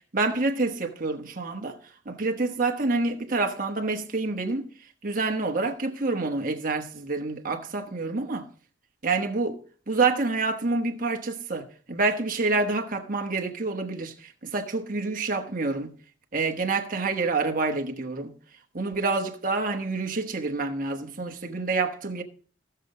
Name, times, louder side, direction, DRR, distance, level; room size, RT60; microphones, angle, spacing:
voice 1, 0.1-1.8 2.0-4.7 5.0-8.5 9.0-9.6 9.9-15.9 16.3-18.3 18.7-22.2, right 3 dB, 45° right, 1.2 m, -27 dB
15.5 x 6.8 x 3.9 m
head